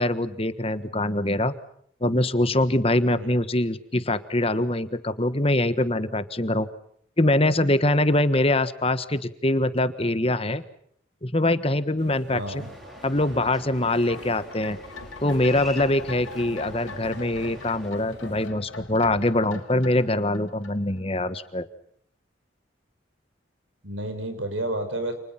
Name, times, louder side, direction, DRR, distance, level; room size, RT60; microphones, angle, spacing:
voice 1, 0.0-1.5 2.0-6.7 7.2-10.6 11.2-12.6 13.0-14.8 15.2-21.7, left 1 dB, 30° left, 12 dB, 1.4 m, -23 dB
sound 1, 12.0-18.5, right 1 dB, 60° right, 3.0 m, -48 dB
voice 2, 12.3-12.7 16.4-16.6 23.8-25.1, right 1 dB, 80° right, 8 dB, 6.2 m, -31 dB
sound 2, 12.6-17.9, left 2 dB, ahead, 4.0 m, -44 dB
sound 3, 13.8-21.2 21.4-21.5, left 3 dB, 90° left, 3.3 m, -41 dB
29.5 x 29.0 x 5.9 m, 0.66 s
head